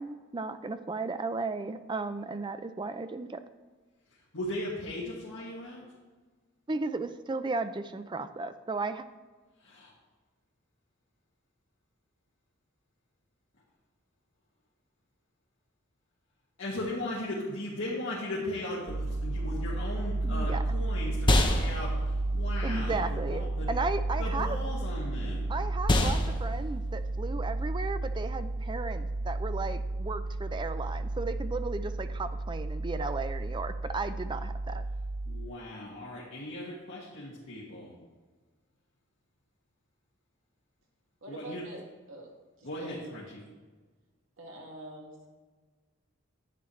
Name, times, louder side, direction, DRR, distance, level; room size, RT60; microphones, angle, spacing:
voice 1, 0.0-3.4 6.7-9.1 20.2-20.6 22.6-24.6 25.5-34.8, right 3 dB, 20° right, 10 dB, 0.4 m, -35 dB
voice 2, 4.3-5.8 9.6-9.9 16.6-21.9 22.3-23.7 24.2-25.5 35.3-37.9 41.3-41.6 42.6-43.2, left 1 dB, 60° left, -7 dB, 1.9 m, -37 dB
sound 1, 18.9-35.5, right 2 dB, 85° right, 0.5 m, -32 dB
sound 2, 19.9-29.5, left 1 dB, 25° left, 0.8 m, -32 dB
voice 3, 41.2-42.3 42.6-43.1 44.4-45.3, right 1 dB, 70° right, -1 dB, 2.0 m, -45 dB
10.5 x 8.6 x 3.2 m, 1.4 s
head